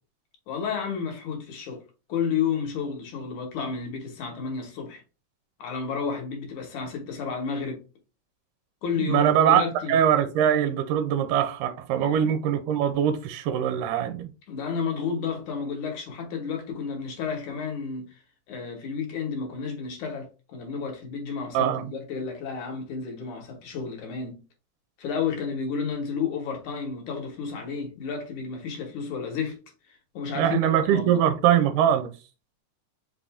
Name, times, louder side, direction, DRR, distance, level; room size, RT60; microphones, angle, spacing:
voice 1, 0.5-1.8 2.1-5.0 5.6-7.8 8.8-10.0 11.9-12.4 14.5-18.2 18.5-24.4 25.0-29.6 29.9-31.2, left 6 dB, 65° left, 2.5 m, -31 dB
voice 2, 9.0-9.6 9.9-14.3 21.5-21.9 30.4-32.1, right 9 dB, 80° right, 2.2 m, -22 dB
5.4 x 2.6 x 3.4 m
omnidirectional pair, 3.9 m